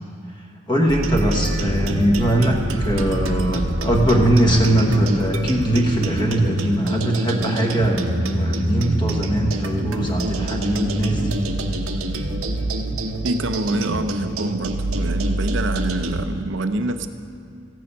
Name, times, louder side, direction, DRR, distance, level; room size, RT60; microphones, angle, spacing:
voice 1, 0.7-11.4, right 1 dB, 20° left, 1 dB, 1.2 m, -20 dB
sound 1, 0.9-16.3, right 1 dB, 85° right, 0.9 m, -26 dB
sound 2, 1.5-6.6 6.9-7.1, equal, 50° left, 1.8 m, -34 dB
voice 2, 13.2-17.1, right 2 dB, 60° right, 9 dB, 0.6 m, -26 dB
14.5 x 9.3 x 5.4 m, 2.4 s
head